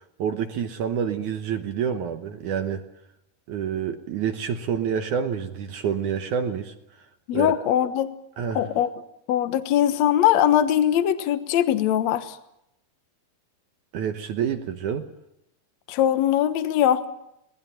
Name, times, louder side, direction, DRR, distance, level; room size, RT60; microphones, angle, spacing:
voice 1, 0.2-2.8 3.5-6.7 7.3-7.5 8.4-8.6 13.9-15.1, right 7 dB, 65° right, 7 dB, 2.1 m, -28 dB
voice 2, 7.3-8.1 8.5-8.9 9.3-12.4 15.9-17.1, left 11 dB, 60° left, 11 dB, 1.9 m, -21 dB
24.5 x 18.5 x 8.8 m, 0.83 s
omnidirectional pair, 4.5 m